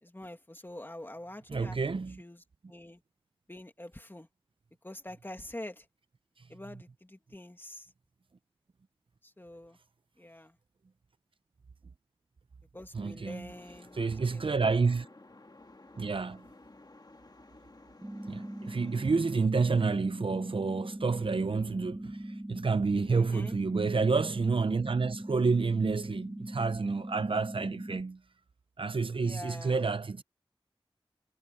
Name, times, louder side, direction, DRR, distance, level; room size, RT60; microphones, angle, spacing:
voice 1, 0.0-1.8 2.2-3.0 3.5-4.3 4.8-5.9 6.5-7.9 9.2-9.8 10.2-10.6 12.7-14.7 23.1-23.6 27.5-27.7 29.2-29.9, left 1 dB, 25° left, 2.4 m, -46 dB
voice 2, 1.5-2.2 12.9-13.5 14.0-15.1 16.0-16.4 18.3-28.2 28.8-30.2, right 4 dB, 70° right, 0.6 m, -29 dB
sound 1, 13.5-19.5, left 2 dB, 45° left, 2.2 m, -55 dB
sound 2, 18.0-28.0, right 1 dB, 15° right, 0.7 m, -41 dB
wide cardioid pair, 65°, 9 cm